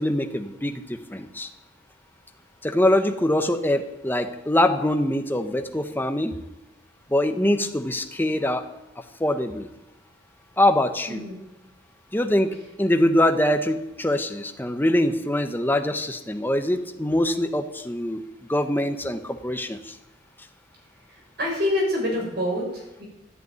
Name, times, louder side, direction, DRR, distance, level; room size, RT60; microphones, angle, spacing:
voice 1, 0.0-1.5 2.6-6.4 7.1-8.7 9.2-9.7 10.6-11.2 12.1-18.2 18.5-20.0, left 1 dB, 10° left, 7 dB, 1.1 m, -23 dB
voice 2, 11.1-11.4 21.1-23.0, left 1 dB, 65° right, -1 dB, 7.1 m, -27 dB
14.0 x 9.1 x 9.4 m, 0.91 s
head